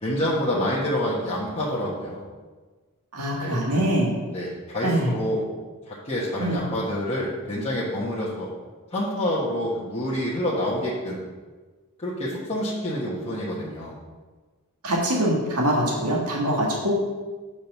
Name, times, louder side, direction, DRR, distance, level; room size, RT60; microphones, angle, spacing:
voice 1, 0.0-2.2 3.4-3.9 4.3-5.4 5.9-8.5 8.9-11.2 12.0-13.9, left 1 dB, 30° left, -8 dB, 1.4 m, -27 dB
voice 2, 3.1-4.1 4.8-5.1 6.4-6.6 14.8-16.9, right 1 dB, 85° right, -3 dB, 1.6 m, -23 dB
7.0 x 5.0 x 6.0 m, 1.3 s
head